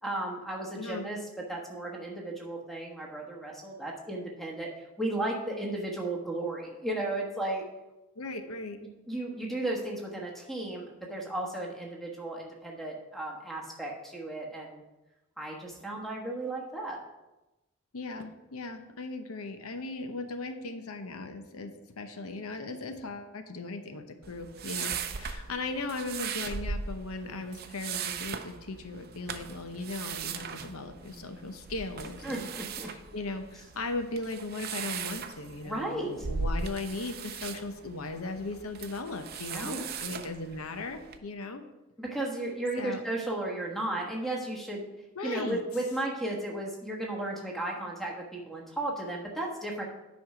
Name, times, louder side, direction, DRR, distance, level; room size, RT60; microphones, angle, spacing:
voice 1, 0.0-1.2 1.5-4.7 5.0-7.6 9.1-14.8 15.4-17.0 32.2-32.9 35.6-36.3 39.5-39.8 42.0-44.8 45.2-49.8, right 2 dB, ahead, -1 dB, 1.3 m, -34 dB
voice 2, 0.8-1.1 8.2-8.8 17.9-32.5 32.8-41.6 42.8-43.0 45.2-45.6, left 3 dB, 90° left, 8 dB, 0.8 m, -38 dB
sound 1, 24.2-41.2, right 5 dB, 45° right, 0.5 m, -39 dB
9.1 x 5.5 x 4.9 m, 1.0 s
head